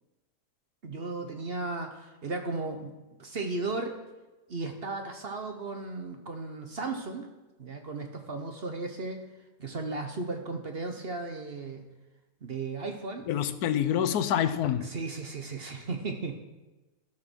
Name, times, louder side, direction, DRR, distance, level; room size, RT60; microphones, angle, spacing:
voice 1, 0.8-2.9 3.2-4.0 4.5-7.3 7.6-9.2 9.6-11.9 12.4-13.2 14.8-16.4, right 3 dB, 45° right, 1.0 m, -35 dB
voice 2, 13.3-14.9, left 9 dB, 70° left, 1.2 m, -27 dB
13.0 x 5.9 x 6.1 m
omnidirectional pair, 1.8 m